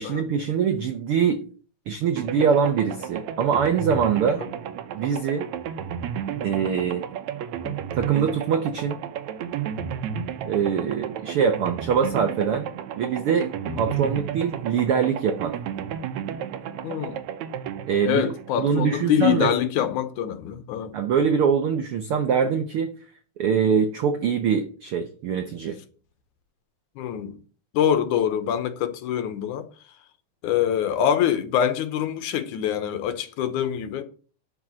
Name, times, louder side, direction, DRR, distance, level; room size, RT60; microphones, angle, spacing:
voice 1, 0.0-1.4 1.9-4.4 4.9-5.5 6.4-7.0 7.9-9.0 10.5-12.7 13.0-13.5 13.8-15.5 17.9-18.2 18.6-19.5 20.9-22.9 23.4-25.8, right 7 dB, 85° right, 1.2 m, -23 dB
sound 1, 2.2-19.1, right 8 dB, 70° right, 1.9 m, -32 dB
voice 2, 13.7-14.0 16.8-17.2 18.0-20.9 27.0-27.4 27.7-29.7 30.4-34.0, left 9 dB, 75° left, 2.3 m, -25 dB
11.0 x 4.9 x 7.6 m
omnidirectional pair, 3.8 m